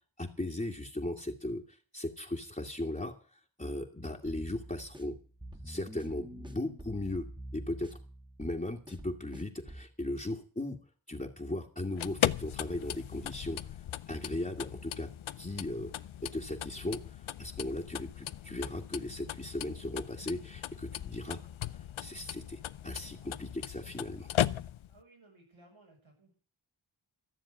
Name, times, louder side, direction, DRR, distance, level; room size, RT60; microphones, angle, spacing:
voice 1, 0.2-3.1 3.6-5.2 5.6-7.3 7.5-8.0 8.4-10.8 11.1-13.6 14.1-15.1 15.4-21.4 22.0-24.3, left 1 dB, 15° left, -2 dB, 2.0 m, -37 dB
sound 1, 4.3-9.9, right 1 dB, 10° right, 1.9 m, -47 dB
sound 2, 11.8-25.0, left 11 dB, 85° left, 0.6 m, -37 dB
voice 2, 24.9-26.3, right 2 dB, 90° right, -1 dB, 7.2 m, -60 dB
14.0 x 7.2 x 10.0 m, 0.40 s
cardioid pair, 50°, 46 cm